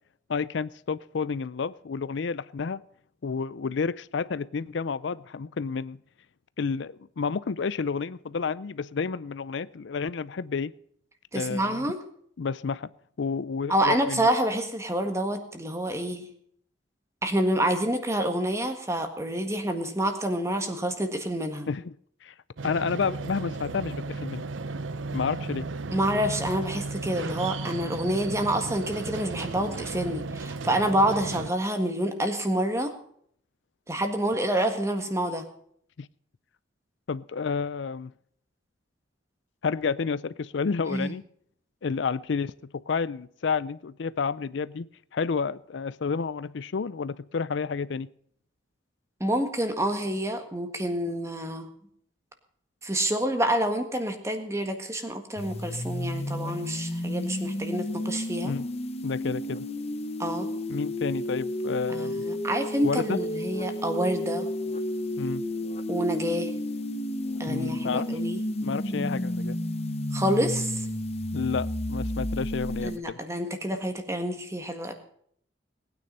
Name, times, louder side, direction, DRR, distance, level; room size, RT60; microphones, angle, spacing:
voice 1, 0.3-2.8 3.2-6.0 6.6-10.7 11.3-11.9 12.4-12.9 13.2-14.3 21.7-22.0 22.2-22.3 22.6-24.4 25.1-25.6 36.0-36.1 37.1-38.1 39.6-41.2 41.8-48.1 58.4-58.7 59.0-59.7 60.7-62.2 62.8-63.2 65.2-65.4 67.5-68.1 68.6-69.6 71.3-73.2, left 5 dB, 70° left, 17 dB, 0.5 m, -30 dB
voice 2, 11.3-12.0 13.7-16.3 17.2-21.7 25.9-32.9 33.9-35.4 40.9-41.1 49.2-51.7 52.8-58.5 60.2-60.5 61.9-64.5 65.9-66.5 67.4-68.4 70.1-70.8 72.8-74.9, right 1 dB, 15° right, 6 dB, 1.7 m, -28 dB
sound 1, 22.6-31.5, right 3 dB, 85° right, 0.7 m, -34 dB
sound 2, 55.4-73.0, left 1 dB, 35° left, 0.8 m, -32 dB
19.5 x 9.4 x 5.5 m, 0.64 s
head